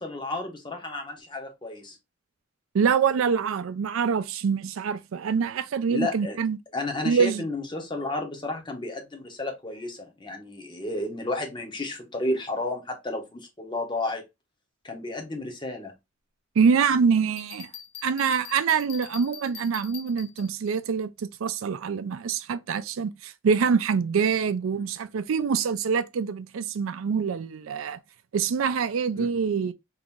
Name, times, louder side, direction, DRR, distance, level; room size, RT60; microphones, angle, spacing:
voice 1, 0.0-2.0 5.9-6.4 6.7-14.2 14.8-15.9 24.7-24.8 29.2-29.3, left 2 dB, 25° left, 0.8 m, -32 dB
voice 2, 2.7-6.6 7.0-7.4 16.6-17.7 18.0-28.0 28.3-29.7, right 6 dB, 80° right, 0.4 m, -25 dB
Bell, 17.4-20.7, left 9 dB, 50° left, 0.4 m, -44 dB
2.8 x 2.5 x 3.6 m
head